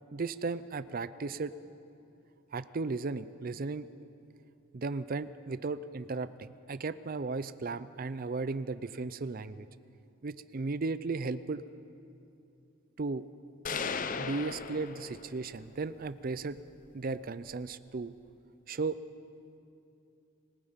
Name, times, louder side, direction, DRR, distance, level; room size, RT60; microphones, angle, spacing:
voice 1, 0.1-1.5 2.5-3.9 4.7-9.7 10.2-11.6 13.0-13.2 14.2-16.6 16.9-18.1 18.7-19.0, right 3 dB, 45° right, 14 dB, 0.5 m, -35 dB
sound 1, 13.7-15.6, left 5 dB, 40° left, 0.6 m, -36 dB
26.5 x 19.0 x 5.2 m, 2.7 s
head